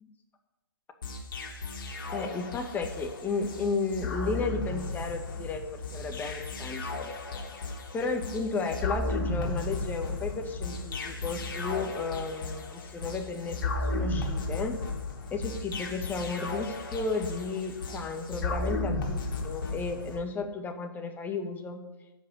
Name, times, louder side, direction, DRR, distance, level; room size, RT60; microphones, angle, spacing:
sound 1, 1.0-20.2, left 2 dB, 60° left, 3.5 m, -34 dB
voice 1, 2.1-6.9 7.9-14.8 15.3-21.8, left 4 dB, 15° left, 5 dB, 1.9 m, -33 dB
12.0 x 8.1 x 9.6 m, 1.0 s
figure-of-eight pair, 130°, 12 cm